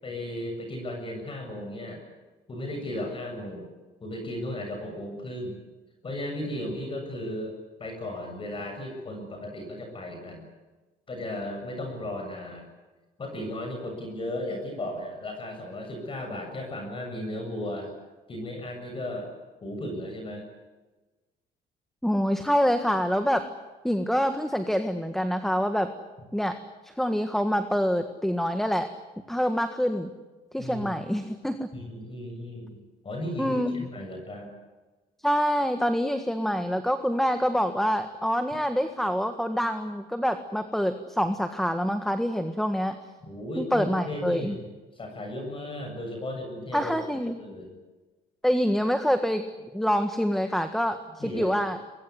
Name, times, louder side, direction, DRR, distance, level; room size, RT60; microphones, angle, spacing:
voice 1, 0.0-2.0 2.5-3.7 4.0-5.6 6.0-10.5 11.1-12.7 13.2-18.0 18.3-19.3 19.6-20.4 30.6-30.9 31.7-34.5 43.2-44.7 44.9-46.9 47.4-47.7 51.2-51.7, left 1 dB, 30° left, 3 dB, 7.5 m, -35 dB
voice 2, 22.0-23.5 23.8-25.9 26.3-26.6 26.8-28.9 29.3-30.1 30.5-31.7 33.4-33.9 35.2-43.0 43.6-44.6 46.7-47.4 48.4-49.4 49.7-51.8, equal, ahead, 8 dB, 1.6 m, -26 dB
23.5 x 22.0 x 9.6 m, 1.2 s
cardioid pair, 110°, 17 cm